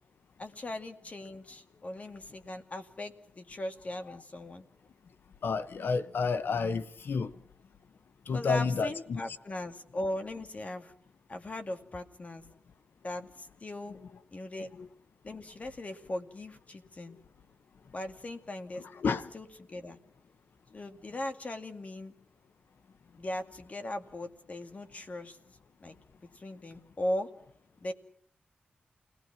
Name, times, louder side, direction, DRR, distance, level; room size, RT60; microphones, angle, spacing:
voice 1, 0.4-4.7 8.3-10.9 11.3-12.5 13.0-14.0 14.3-14.7 15.2-17.2 17.9-20.0 20.7-22.1 23.2-25.4 25.8-27.3 27.8-27.9, left 1 dB, 40° left, 2.3 m, -39 dB
voice 2, 5.4-7.3 8.3-9.2 14.8-14.9 19.0-19.3, left 5 dB, 80° left, 1.0 m, -30 dB
29.0 x 19.0 x 6.0 m
wide cardioid pair, 85°, 4 cm